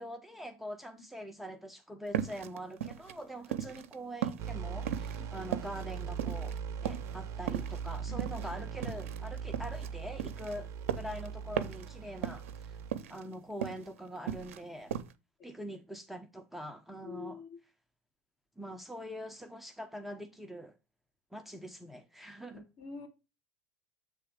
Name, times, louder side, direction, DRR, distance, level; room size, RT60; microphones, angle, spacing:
voice 1, 0.0-6.5 6.8-10.7 10.9-12.8 13.1-14.9 15.4-17.4 18.6-20.7 21.3-22.6, equal, ahead, 0.8 m, -44 dB
sound 1, 2.1-3.9 4.2-6.6 6.8-7.2 7.5-9.9 10.2-11.3 11.6-11.9 12.2-12.6 12.9-13.9 14.1-14.7 14.9-15.1, right 9 dB, 80° right, 0.6 m, -37 dB
sound 2, 4.4-12.9, right 7 dB, 50° right, 0.8 m, -40 dB
voice 2, 17.0-17.6 22.5-23.1, left 4 dB, 50° left, 2.2 m, -45 dB
7.7 x 3.4 x 5.0 m
hypercardioid pair, 90°, 7 cm